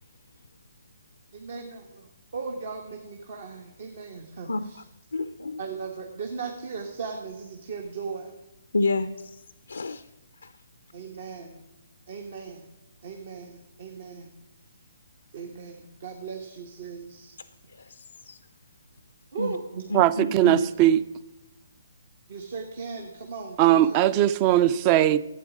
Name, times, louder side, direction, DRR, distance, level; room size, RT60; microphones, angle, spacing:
voice 1, 1.3-4.8 5.6-8.3 10.9-11.7 12.1-12.7 13.0-14.3 15.3-17.4 19.3-19.8 22.3-24.0, right 5 dB, 60° right, 3 dB, 1.2 m, -37 dB
voice 2, 4.5-4.8 5.1-5.6 8.7-9.4 9.7-10.1 10.4-10.5 17.8-18.4 19.4-19.5 19.9-20.6, left 2 dB, 85° left, 12 dB, 0.4 m, -29 dB
voice 3, 19.9-21.0 23.6-25.2, right 12 dB, 30° right, 18 dB, 0.4 m, -19 dB
12.0 x 8.5 x 5.0 m, 0.92 s
hypercardioid pair, 140°, 0 cm